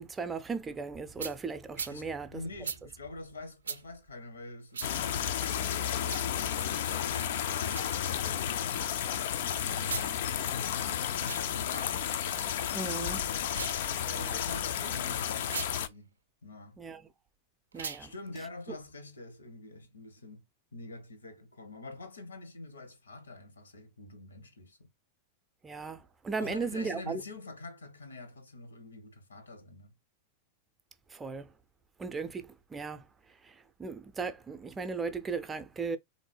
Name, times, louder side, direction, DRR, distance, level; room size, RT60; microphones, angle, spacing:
voice 1, 0.0-2.4 12.7-13.3 14.0-14.4 16.8-17.0 17.7-18.1 25.6-27.2 31.1-31.5 32.0-33.0 33.4-33.5 33.8-36.0, right 4 dB, 15° right, 0.5 m, -36 dB
sound 1, 1.2-1.4 1.7-2.0 2.6-2.8 3.6-3.8 4.7-4.9 6.0-6.3 7.6-7.9 9.8-10.1 11.1-11.4 13.4-13.8 15.4-15.7 17.7-18.0, right 6 dB, 70° right, 0.4 m, -38 dB
voice 2, 1.9-12.0 14.1-16.2 16.4-16.8 18.0-20.4 20.7-24.9 26.4-29.9, left 2 dB, 75° left, 0.9 m, -46 dB
sound 2, 4.8-15.9, left 9 dB, 55° left, 0.4 m, -32 dB
3.8 x 2.6 x 3.2 m
figure-of-eight pair, 90°, 0 cm